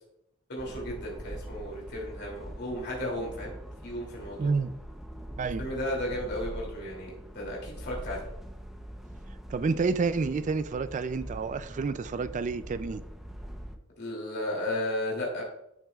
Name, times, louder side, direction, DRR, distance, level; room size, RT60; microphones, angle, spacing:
voice 1, 0.5-3.5 3.8-4.5 5.6-8.2 14.0-15.4, left 1 dB, 55° left, -2 dB, 2.7 m, -34 dB
sound 1, 0.6-13.8, equal, ahead, 0.7 m, -43 dB
voice 2, 4.4-4.7 5.4-5.7 9.5-13.0, right 4 dB, 35° right, 13 dB, 0.3 m, -29 dB
11.5 x 6.2 x 2.4 m, 0.82 s
head